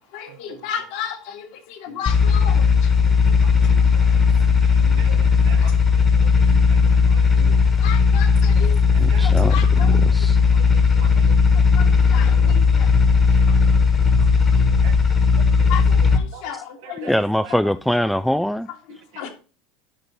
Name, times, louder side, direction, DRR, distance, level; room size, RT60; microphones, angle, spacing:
voice 1, 0.1-2.6 3.2-3.3 5.6-5.7 7.8-8.7 9.1-9.9 11.8-12.9 15.7-17.1 19.2-19.3, left 9 dB, 60° left, 1.8 m, -33 dB
sound 1, 2.1-16.2, left 5 dB, 30° left, 1.4 m, -16 dB
voice 2, 3.4-4.1 4.7-5.7 6.2-7.6 8.9-9.5 11.0-11.4 14.8-14.9 15.6-16.6 16.8-17.2 19.1-19.3, right 10 dB, 60° right, 1.1 m, -43 dB
voice 3, 9.0-10.4 16.5-16.6 17.0-18.7, equal, ahead, 0.3 m, -23 dB
9.9 x 5.2 x 4.2 m
figure-of-eight pair, 75°, 0 cm